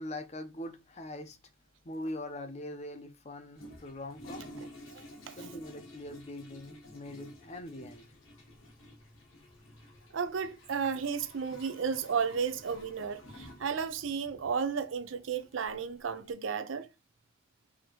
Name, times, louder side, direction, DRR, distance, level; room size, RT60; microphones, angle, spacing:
voice 1, 0.0-1.4 1.8-4.5 5.4-8.1, left 1 dB, 30° left, 0.6 m, -42 dB
Toilet flush, 3.5-16.3, left 1 dB, 80° left, 1.1 m, -52 dB
voice 2, 4.9-5.3 10.1-16.9, right 6 dB, 70° right, 0.5 m, -33 dB
4.9 x 2.8 x 2.9 m
head